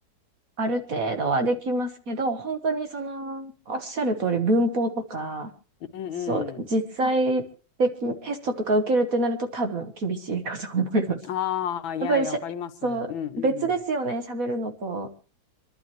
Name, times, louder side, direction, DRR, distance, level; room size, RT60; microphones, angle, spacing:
voice 1, 0.6-5.5 6.3-7.4 7.8-11.2 12.0-12.4 12.8-13.1 13.4-15.1, right 2 dB, 50° right, 1.5 m, -26 dB
voice 2, 5.9-6.6 11.3-13.7, left 9 dB, 75° left, 1.6 m, -31 dB
26.5 x 11.5 x 3.1 m
omnidirectional pair, 2.3 m